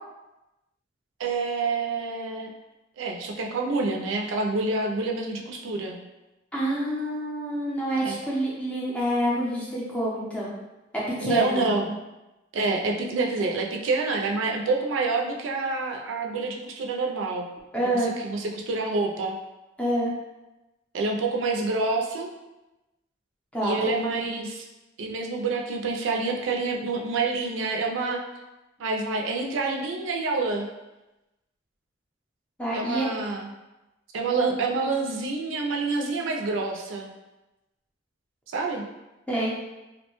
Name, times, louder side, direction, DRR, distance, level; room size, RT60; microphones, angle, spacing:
voice 1, 1.2-2.5 3.0-6.0 8.0-8.2 11.2-12.0 12.5-17.5 17.8-19.4 20.9-22.3 23.6-24.6 25.0-28.2 28.8-30.7 32.7-33.5 34.1-37.1 38.5-38.8, right 3 dB, 90° right, 1 dB, 0.4 m, -27 dB
voice 2, 6.5-10.5 10.9-11.7 17.7-18.1 19.8-20.1 23.5-24.4 32.6-33.1 39.3-39.5, right 1 dB, 5° left, -6 dB, 0.5 m, -27 dB
2.6 x 2.1 x 2.9 m, 1.0 s
head